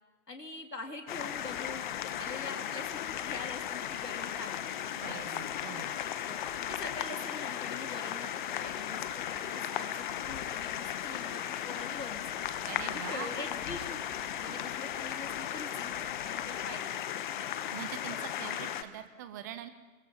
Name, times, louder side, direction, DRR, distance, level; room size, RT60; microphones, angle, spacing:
voice 1, 0.3-1.9 2.2-5.3 6.2-6.4 6.6-8.3 8.6-12.4 12.8-16.0 16.3-16.9, left 3 dB, 85° left, 3 dB, 3.7 m, -44 dB
sound 1, 1.1-18.8, left 10 dB, 30° left, 1.2 m, -36 dB
voice 2, 5.0-6.0 12.7-13.3 17.7-19.7, right 11 dB, 10° right, 11 dB, 0.6 m, -43 dB
26.5 x 22.0 x 5.5 m, 1.4 s
figure-of-eight pair, 130°, 47 cm